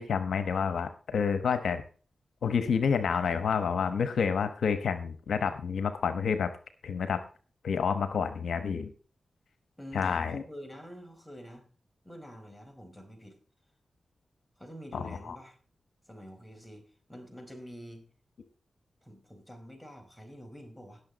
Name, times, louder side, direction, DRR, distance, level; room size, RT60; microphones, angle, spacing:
voice 1, 0.0-1.8 2.4-6.5 6.8-7.2 7.6-8.9 9.9-10.4 14.9-15.4, left 6 dB, 85° left, 10 dB, 1.0 m, -29 dB
voice 2, 9.8-11.7 12.0-13.4 14.6-15.6 16.0-18.0 19.0-21.0, equal, 5° left, 4 dB, 4.8 m, -47 dB
17.5 x 6.7 x 4.0 m, 0.39 s
cardioid pair, 45°, 0 cm